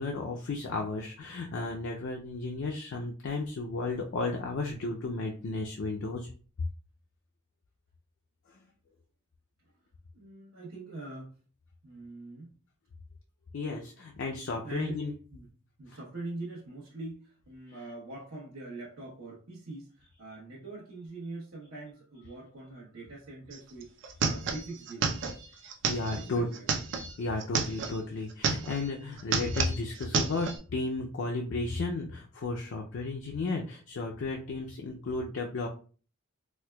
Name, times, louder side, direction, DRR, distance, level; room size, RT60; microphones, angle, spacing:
voice 1, 0.0-6.3 13.5-15.1 15.9-16.0 25.9-26.5 27.2-35.7, left 3 dB, 60° left, 1 dB, 0.4 m, -33 dB
voice 2, 10.1-11.3 11.8-12.5 14.6-15.0 15.3-15.5 15.8-25.4 26.1-26.7, right 2 dB, 80° right, -6 dB, 1.0 m, -43 dB
sound 1, 23.5-23.6 23.8-28.0 28.3-28.9 29.2-30.6, right 5 dB, 55° right, 0.4 m, -31 dB
4.3 x 2.2 x 2.2 m, 0.38 s
head